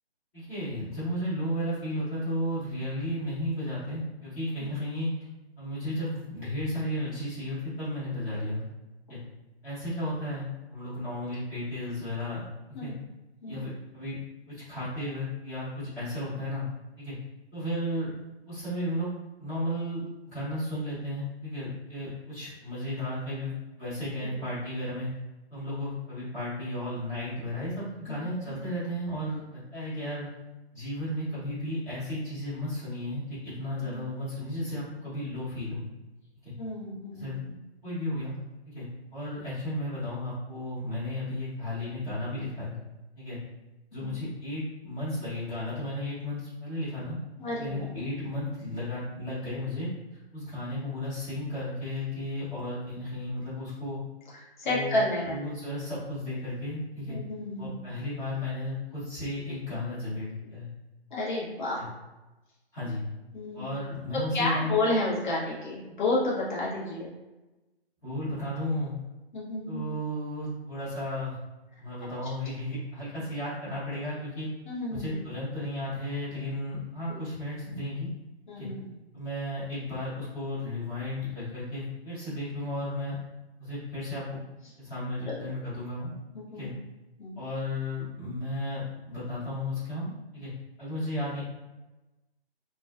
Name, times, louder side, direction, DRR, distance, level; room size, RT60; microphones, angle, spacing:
voice 1, 0.3-5.1 5.6-8.6 9.1-9.2 9.6-12.4 12.8-12.9 13.4-14.2 14.5-16.7 17.0-17.1 17.5-18.1 18.5-19.1 19.4-25.1 25.5-30.3 30.7-35.8 36.4-36.5 37.1-37.4 37.8-38.4 38.6-42.7 43.2-43.4 43.9-47.2 47.6-49.9 50.3-54.0 54.6-54.9 55.2-57.2 57.6-60.7 61.8-61.9 62.7-63.0 63.5-64.7 68.0-68.9 69.7-71.4 71.8-74.5 74.9-78.1 78.6-78.7 79.1-83.2 83.6-84.4 84.8-86.1 86.5-86.7 87.4-90.5 90.8-91.4, left 1 dB, 10° left, -13 dB, 0.9 m, -34 dB
voice 2, 36.6-37.6 44.0-44.2 47.4-47.7 54.3-55.4 57.1-57.7 61.1-61.9 63.3-63.7 64.3-67.1 69.3-69.8 74.7-75.1 77.1-77.2 78.5-78.9 85.3-85.4 86.3-86.8 87.2-87.4, left 2 dB, 45° left, -6 dB, 0.8 m, -31 dB
2.3 x 2.2 x 2.3 m, 1.1 s
figure-of-eight pair, 145°, 32 cm